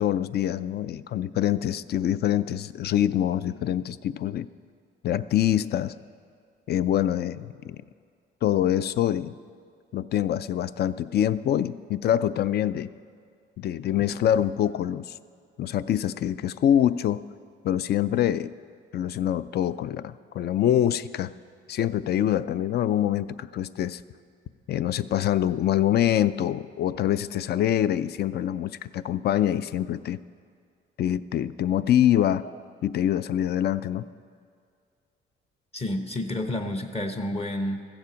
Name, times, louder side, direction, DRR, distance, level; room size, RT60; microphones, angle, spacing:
voice 1, 0.0-4.5 5.0-5.9 6.7-7.8 8.4-9.3 9.9-12.9 13.6-15.2 15.6-17.3 17.6-18.5 18.9-21.3 21.7-24.0 24.7-30.2 31.0-32.4 32.8-34.1, left 11 dB, 55° left, 16 dB, 0.4 m, -25 dB
voice 2, 35.7-37.9, left 1 dB, 30° left, 6 dB, 0.8 m, -30 dB
15.5 x 7.2 x 5.1 m, 2.2 s
cardioid pair, 90°, 20 cm